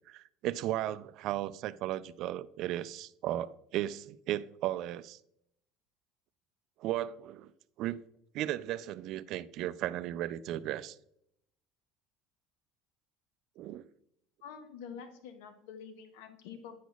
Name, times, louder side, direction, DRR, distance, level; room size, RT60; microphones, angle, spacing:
voice 1, 0.1-5.2 6.8-7.5 7.8-8.0 8.3-11.0 13.6-13.8, right 13 dB, 55° right, 0.3 m, -35 dB
voice 2, 14.4-16.8, left 7 dB, 90° left, 0.7 m, -47 dB
9.2 x 6.1 x 2.4 m
cardioid pair, 145°, 0 cm